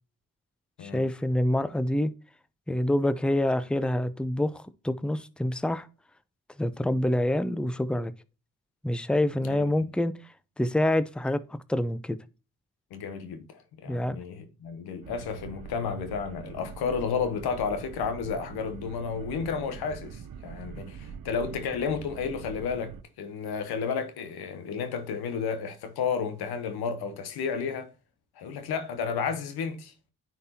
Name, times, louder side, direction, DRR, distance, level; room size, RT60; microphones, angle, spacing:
voice 1, 0.8-2.1 2.7-5.9 6.6-8.1 8.8-10.1 10.6-12.2 13.8-14.2, left 1 dB, 5° left, 0.7 m, -26 dB
voice 2, 9.4-9.9 12.9-27.9 28.4-29.9, left 6 dB, 90° left, 1.0 m, -32 dB
sound 1, 15.0-23.0, right 7 dB, 65° right, 0.7 m, -44 dB
9.6 x 4.4 x 2.9 m
supercardioid pair, 40°, 37 cm